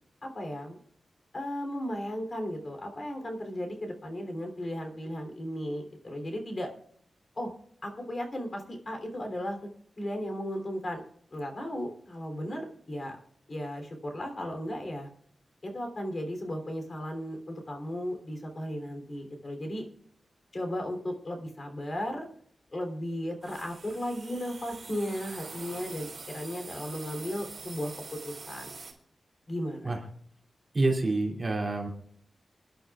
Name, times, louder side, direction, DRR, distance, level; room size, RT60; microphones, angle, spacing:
voice 1, 0.2-0.8 1.3-6.7 7.3-7.5 7.8-9.6 10.0-11.0 11.3-13.2 13.5-15.1 15.6-19.9 20.5-22.3 22.7-27.9 28.2-28.7 29.5-30.0, equal, 40° left, 4 dB, 3.1 m, -35 dB
sound 1, 23.4-28.9, right 4 dB, 45° right, 3.7 m, -44 dB
voice 2, 30.7-31.9, right 2 dB, 30° right, 0 dB, 2.7 m, -27 dB
27.5 x 11.5 x 2.4 m, 0.64 s
wide cardioid pair, 155°, 0 cm